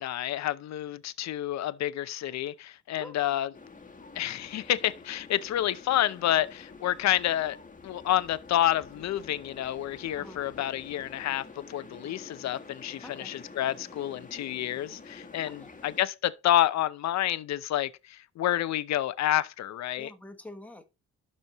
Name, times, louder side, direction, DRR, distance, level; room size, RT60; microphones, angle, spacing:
voice 1, 0.0-3.5 4.1-7.6 7.8-20.1, left 12 dB, 65° left, 0.6 m, -29 dB
sound 1, 3.5-16.0, left 4 dB, 25° left, 1.3 m, -48 dB
voice 2, 13.0-13.4 15.4-15.8 20.0-20.8, left 1 dB, 5° left, 1.2 m, -46 dB
12.0 x 4.3 x 3.0 m
cardioid pair, 90°, 30 cm